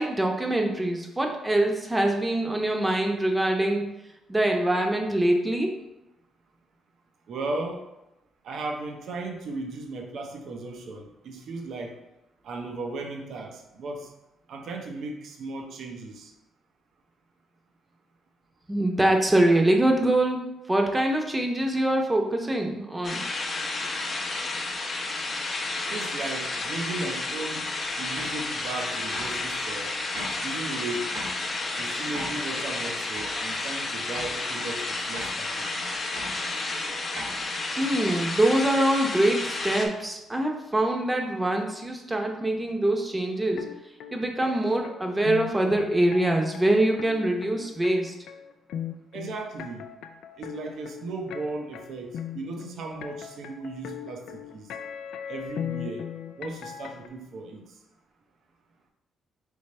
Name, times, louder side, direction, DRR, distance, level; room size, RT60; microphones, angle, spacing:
voice 1, 0.0-3.9 4.3-5.7 18.7-20.4 20.7-23.2 37.8-43.7 44.1-48.1, right 1 dB, 15° right, 2 dB, 0.8 m, -24 dB
voice 2, 7.3-7.8 8.4-12.0 12.4-14.1 14.5-16.3 25.9-27.7 28.0-30.0 30.4-31.1 31.8-35.9 49.1-49.8 50.4-54.7 55.3-56.1 56.4-57.6, right 2 dB, 70° right, 2 dB, 0.6 m, -36 dB
sound 1, 23.0-39.9, left 2 dB, 40° left, 0.7 m, -31 dB
sound 2, 28.2-28.4 29.1-29.4 30.1-30.4 31.1-31.4 32.1-32.4 33.1-33.3 34.1-34.3 35.1-35.4 36.1-36.4 37.1-37.4, right 1 dB, 85° right, 1.5 m, -37 dB
sound 3, 43.6-57.1, left 9 dB, 80° left, 0.3 m, -38 dB
3.5 x 3.1 x 4.2 m, 0.93 s
cardioid pair, 90°, 0 cm